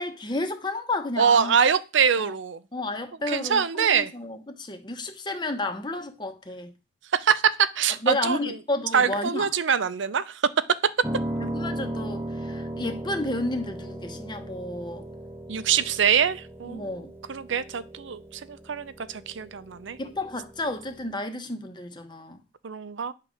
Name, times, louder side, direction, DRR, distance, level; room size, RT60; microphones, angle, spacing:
voice 1, 0.0-1.6 2.2-2.3 2.7-6.7 8.0-9.5 11.4-15.0 16.6-17.1 20.0-22.4, left 2 dB, 25° left, 1.0 m, -31 dB
voice 2, 1.2-2.6 3.3-4.1 7.1-8.5 8.9-10.4 15.5-17.0 17.3-20.0 22.6-23.1, right 7 dB, 65° right, 0.6 m, -24 dB
Piano, 11.0-21.1, right 1 dB, 10° right, 0.8 m, -37 dB
10.0 x 3.8 x 6.3 m
head